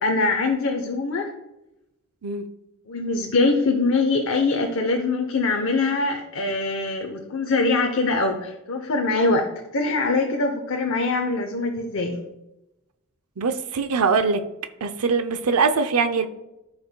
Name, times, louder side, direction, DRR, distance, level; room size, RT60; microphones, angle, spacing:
voice 1, 0.0-1.3 2.9-9.5 9.7-12.2, left 3 dB, 60° left, 3 dB, 0.8 m, -23 dB
voice 2, 13.4-14.4 14.8-16.3, right 4 dB, 90° right, 8 dB, 0.6 m, -22 dB
14.0 x 5.2 x 2.2 m, 0.93 s
head